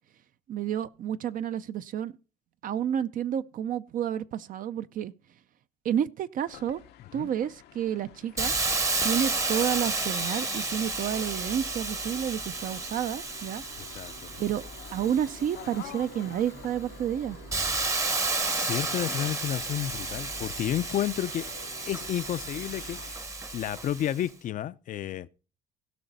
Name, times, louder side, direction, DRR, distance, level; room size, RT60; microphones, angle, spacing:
voice 1, 0.5-2.1 2.6-5.1 5.8-6.8 7.1-8.6 9.0-13.6 14.4-14.6 14.9-17.4, right 9 dB, 55° right, 0.5 m, -30 dB
sound 1, 6.5-23.1, left 12 dB, 75° left, 0.8 m, -49 dB
Hiss, 8.4-15.9 16.5-24.2, right 3 dB, 20° right, 0.8 m, -32 dB
Musical instrument, 11.1-23.0, right 5 dB, 70° right, 3.7 m, -52 dB
voice 2, 13.8-14.4 18.5-21.5 21.9-23.2 23.5-25.3, left 11 dB, 50° left, 0.5 m, -31 dB
16.0 x 5.9 x 4.1 m
cardioid pair, 110°, 17 cm